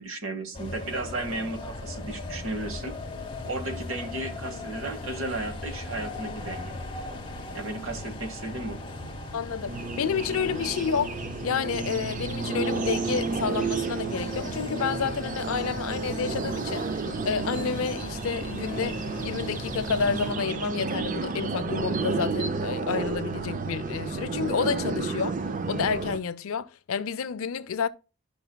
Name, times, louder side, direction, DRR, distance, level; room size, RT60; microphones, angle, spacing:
voice 1, 0.0-2.9 3.4-6.7 7.5-8.8, right 2 dB, 60° right, 1.0 m, -34 dB
sound 1, 0.5-20.3, left 2 dB, 20° left, 1.0 m, -39 dB
voice 2, 9.3-11.2 11.4-16.9 17.3-25.4 25.7-27.9, left 6 dB, 65° left, 0.4 m, -30 dB
sound 2, 9.7-26.2, right 4 dB, 35° right, 0.4 m, -31 dB
12.0 x 5.8 x 2.2 m
head